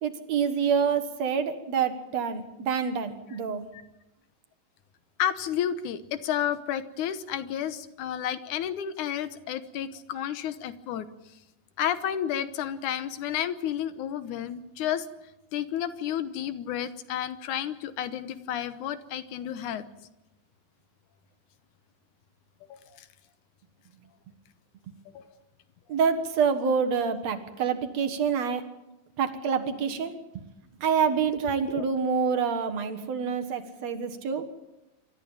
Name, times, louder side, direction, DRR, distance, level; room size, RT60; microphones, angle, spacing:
voice 1, 0.0-3.6 25.9-28.6 29.2-30.1 30.8-34.4, right 6 dB, 55° right, 7 dB, 2.4 m, -27 dB
voice 2, 5.2-11.1 11.8-15.1 15.5-19.8 22.7-23.1 25.1-25.2 31.7-31.8, left 10 dB, 70° left, 12 dB, 2.3 m, -31 dB
27.0 x 13.5 x 8.9 m, 0.94 s
omnidirectional pair, 4.0 m